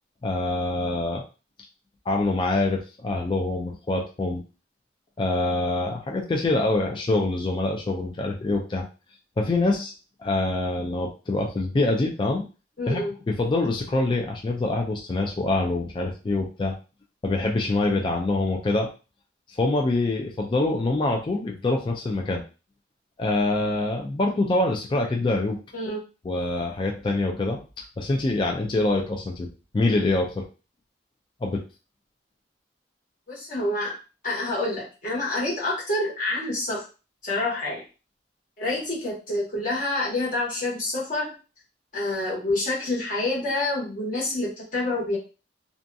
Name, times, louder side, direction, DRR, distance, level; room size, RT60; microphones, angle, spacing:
voice 1, 0.2-1.2 2.1-4.4 5.2-8.8 9.4-9.9 10.2-12.4 12.9-16.7 17.2-18.9 19.6-22.4 23.2-25.6 26.3-27.6 28.0-29.5 29.7-30.4 31.4-31.6, left 2 dB, 25° left, 0 dB, 0.3 m, -25 dB
voice 2, 12.8-13.1 25.7-26.0 33.3-34.0 34.2-36.8 37.2-37.8 38.6-41.3 41.9-45.2, left 2 dB, 50° left, -4 dB, 1.2 m, -27 dB
2.6 x 2.2 x 2.6 m, 0.33 s
head